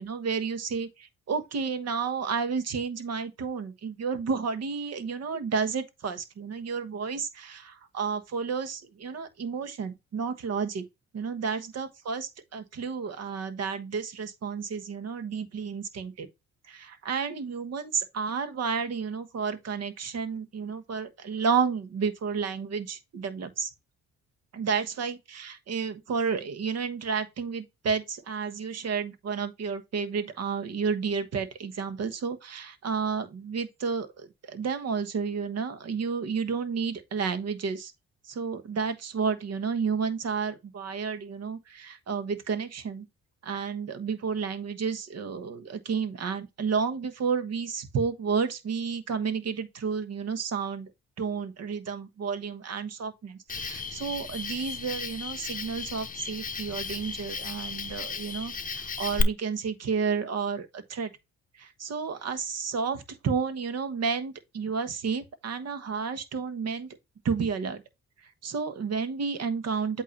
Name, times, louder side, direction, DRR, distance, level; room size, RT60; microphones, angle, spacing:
voice 1, 0.0-10.8 11.1-16.3 16.7-23.7 24.5-37.9 38.3-43.0 43.4-50.9 51.2-61.1 61.6-66.9 67.2-67.8 68.4-70.0, right 5 dB, 55° right, 1.3 m, -31 dB
Cricket, 53.5-59.2, left 5 dB, 25° left, 0.8 m, -35 dB
8.2 x 2.8 x 5.8 m
cardioid pair, 90°, 30 cm